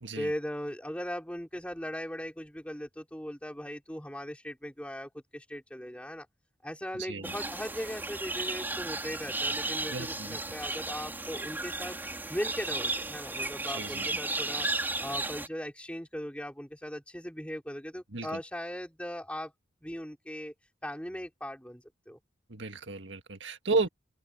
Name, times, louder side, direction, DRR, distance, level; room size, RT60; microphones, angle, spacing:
voice 1, 0.2-6.3 6.6-12.0 12.3-14.7 15.0-19.5 19.8-20.5 20.8-22.2, equal, 5° left, 3.9 m, -38 dB
voice 2, 7.0-7.4 9.9-10.4 13.7-14.1 18.1-18.4 22.5-23.9, right 3 dB, 80° right, 1.7 m, -33 dB
sound 1, 7.2-15.5, right 2 dB, 10° right, 4.3 m, -34 dB
open air
head